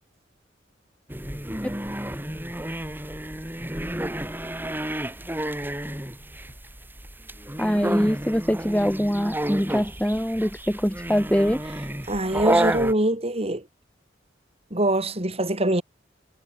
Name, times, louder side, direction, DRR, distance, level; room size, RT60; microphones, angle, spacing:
sound 1, 1.1-12.9, right 1 dB, 10° right, 7.8 m, -30 dB
voice 1, 7.6-11.6, equal, 5° left, 7.5 m, -23 dB
voice 2, 12.1-13.6 14.7-15.8, right 1 dB, 35° right, 5.3 m, -23 dB
head